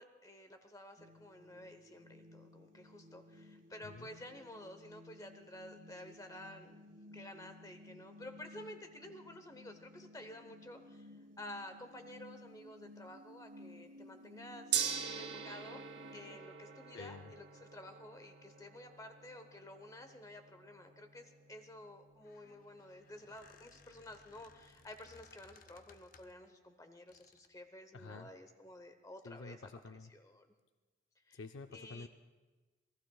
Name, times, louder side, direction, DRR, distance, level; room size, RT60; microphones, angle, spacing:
voice 1, 0.0-6.8 7.1-11.1 11.4-15.8 16.1-29.7 30.1-30.5 31.3-31.4 31.7-32.1, left 1 dB, 20° left, 7 dB, 0.9 m, -52 dB
sound 1, 1.0-16.3, left 1 dB, 90° right, 2.6 m, -56 dB
Gong, 14.7-24.9, right 8 dB, 65° right, 0.9 m, -44 dB
voice 2, 16.9-17.3 27.9-28.3 29.2-30.1 31.3-32.1, left 3 dB, 80° left, 7 dB, 0.5 m, -49 dB
Squeak, 22.1-26.5 27.1-27.6, left 4 dB, 45° left, 0.7 m, -63 dB
26.5 x 19.0 x 2.3 m, 1.3 s
head